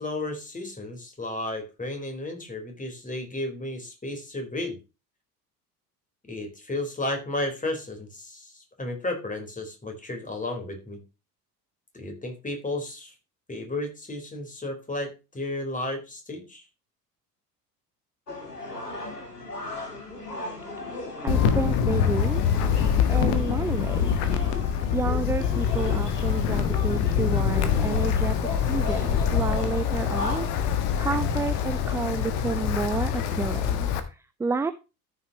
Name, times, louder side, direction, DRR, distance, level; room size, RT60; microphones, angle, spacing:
voice 1, 0.0-4.8 6.3-11.0 11.9-13.1 13.5-16.6, left 2 dB, 15° left, 4 dB, 4.1 m, -33 dB
sound 1, 18.3-30.7 31.1-31.6, left 3 dB, 80° left, 2.5 m, -37 dB
voice 2, 21.2-22.4 23.1-24.2 24.9-28.4 28.6-34.7, right 4 dB, 5° right, 12 dB, 0.4 m, -30 dB
Wind, 21.3-34.0, left 8 dB, 55° left, 1.6 m, -25 dB
14.0 x 6.7 x 2.9 m, 0.28 s
figure-of-eight pair, 60°, 46 cm